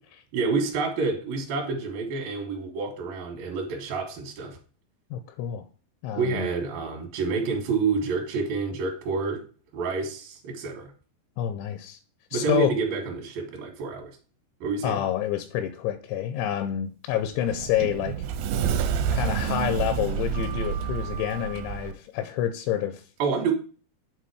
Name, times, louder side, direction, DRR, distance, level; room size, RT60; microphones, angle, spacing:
voice 1, 0.3-4.6 6.2-9.4 9.7-10.9 12.3-14.1 14.6-15.0 23.2-23.5, right 4 dB, 65° right, 2 dB, 2.8 m, -28 dB
voice 2, 5.1-5.6 6.0-6.5 11.4-12.0 12.3-12.7 14.8-18.2 19.1-23.0, left 11 dB, 85° left, 9 dB, 2.9 m, -28 dB
Sliding door, 17.1-21.9, right 8 dB, 85° right, 2.8 m, -29 dB
8.5 x 3.7 x 4.7 m, 0.39 s
omnidirectional pair, 5.2 m